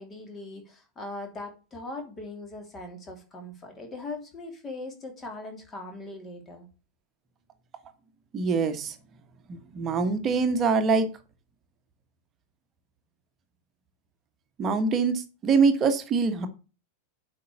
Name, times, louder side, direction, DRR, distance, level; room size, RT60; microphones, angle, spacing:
voice 1, 0.0-6.7, left 2 dB, 20° left, 3 dB, 3.1 m, -40 dB
voice 2, 8.3-8.9 9.5-11.1 14.6-16.5, right 4 dB, 25° right, 8 dB, 1.4 m, -24 dB
8.3 x 5.5 x 7.0 m, 0.34 s
figure-of-eight pair, 90°, 0 cm